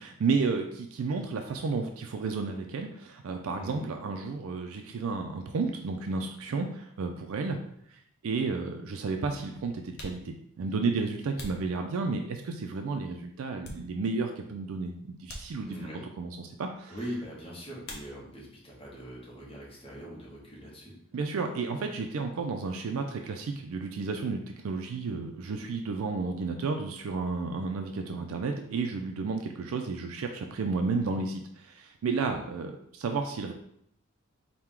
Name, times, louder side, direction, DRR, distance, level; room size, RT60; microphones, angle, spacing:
voice 1, 0.0-7.6 7.9-15.9 16.2-16.9 21.1-33.5, right 4 dB, 70° right, 4 dB, 0.4 m, -32 dB
voice 2, 3.5-3.9 15.6-16.1 16.9-20.9 32.3-32.4, equal, 25° left, -5 dB, 1.0 m, -41 dB
sound 1, 9.9-12.4 13.0-14.3 14.6-14.8 15.2-16.1 17.8-18.6 18.9-19.6 19.8-22.0, left 1 dB, 45° left, 0.6 m, -48 dB
4.4 x 2.2 x 3.6 m, 0.69 s
head